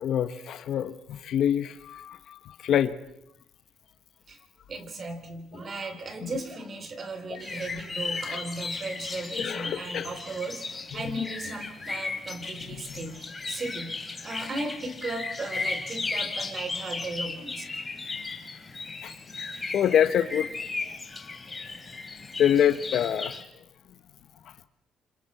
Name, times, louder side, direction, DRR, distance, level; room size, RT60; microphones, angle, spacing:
voice 1, 0.0-3.0 6.2-6.3 7.3-7.8 8.1-8.4 9.3-10.1 10.9-11.2 12.7-12.8 19.0-19.1 19.7-20.5 20.9-21.0 22.4-23.4, left 9 dB, 70° left, 11 dB, 1.1 m, -26 dB
voice 2, 4.7-17.6, right 2 dB, 45° right, 7 dB, 3.5 m, -36 dB
sound 1, 7.4-23.4, left 3 dB, 25° left, 2.9 m, -36 dB
29.0 x 26.0 x 4.3 m, 0.83 s
cardioid pair, 85°, 0 cm